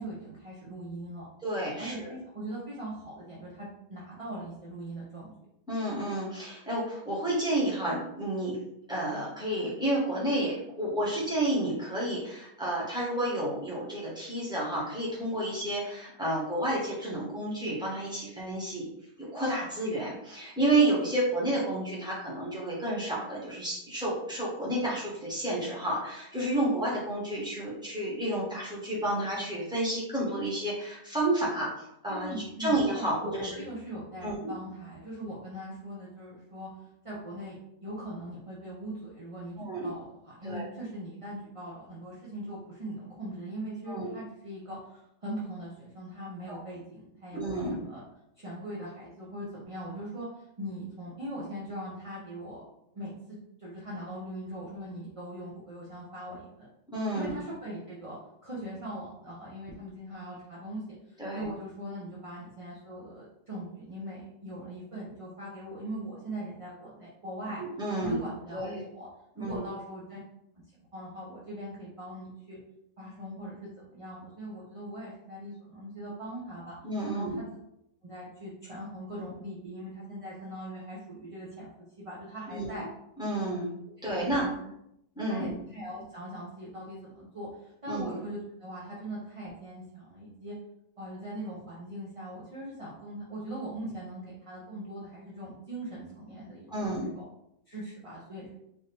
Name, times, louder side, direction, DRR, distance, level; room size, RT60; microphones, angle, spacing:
voice 1, 0.0-1.3 1.8-5.3 32.1-36.7 37.0-37.6 37.8-39.6 39.8-48.0 48.4-52.6 52.9-56.7 57.1-58.2 58.4-67.6 67.9-69.1 69.4-70.2 70.9-72.6 73.0-76.8 77.1-77.5 78.0-82.9 84.1-84.5 85.3-90.5 91.0-96.9 97.1-97.2 97.7-98.5, right 1 dB, 30° right, -7 dB, 0.6 m, -40 dB
voice 2, 1.4-2.1 5.7-8.6 8.9-18.8 19.2-32.3 32.6-33.6 34.2-34.5 39.6-39.9 40.4-40.7 43.9-44.1 46.5-46.6 47.3-47.8 56.9-57.3 61.2-61.5 67.6-68.2 68.5-68.7 69.4-69.6 76.8-77.4 82.5-82.7 83.2-83.7 84.0-84.4 85.1-85.5 87.9-88.2 96.7-97.1, right 1 dB, 5° right, -6 dB, 1.3 m, -30 dB
4.3 x 2.9 x 3.4 m, 0.79 s
omnidirectional pair, 1.7 m